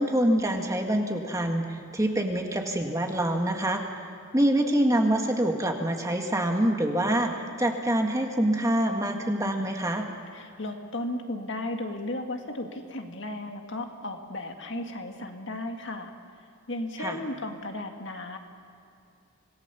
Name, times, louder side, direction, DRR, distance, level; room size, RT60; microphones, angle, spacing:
voice 1, 0.0-3.8 4.3-10.0 17.0-17.2, right 1 dB, 15° right, 3 dB, 1.8 m, -25 dB
voice 2, 10.3-16.1 16.7-18.4, left 1 dB, 55° left, 4 dB, 2.0 m, -35 dB
26.0 x 18.5 x 7.0 m, 2.6 s
head